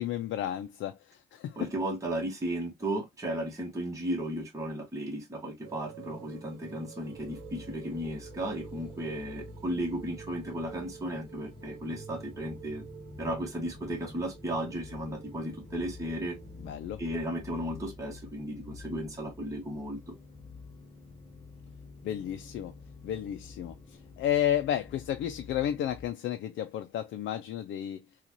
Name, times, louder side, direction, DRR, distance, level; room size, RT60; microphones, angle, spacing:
voice 1, 0.0-1.7 16.6-17.0 22.0-22.7 23.0-28.0, left 11 dB, 70° left, 0.5 m, -32 dB
voice 2, 1.6-12.8 13.2-16.4 17.0-20.2, right 1 dB, 15° right, 1.2 m, -35 dB
sound 1, 5.6-16.7, right 7 dB, 85° right, 0.8 m, -49 dB
sound 2, 7.1-26.1, left 4 dB, 20° left, 0.7 m, -49 dB
3.9 x 2.4 x 2.9 m
cardioid pair, 90°, 20 cm